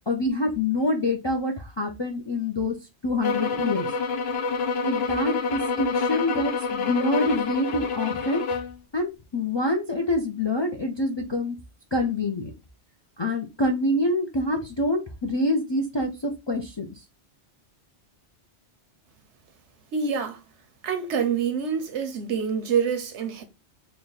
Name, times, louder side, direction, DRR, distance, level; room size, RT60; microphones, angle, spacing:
voice 1, 0.1-2.7 3.0-3.9 4.8-8.4 8.9-11.5 11.9-12.5 13.2-16.9, left 1 dB, 40° left, 0.4 m, -26 dB
sound 1, 3.2-8.7, left 4 dB, 70° left, 0.9 m, -27 dB
voice 2, 19.9-20.4 20.8-23.4, right 6 dB, 85° right, 1.1 m, -26 dB
3.3 x 2.2 x 3.8 m
omnidirectional pair, 1.1 m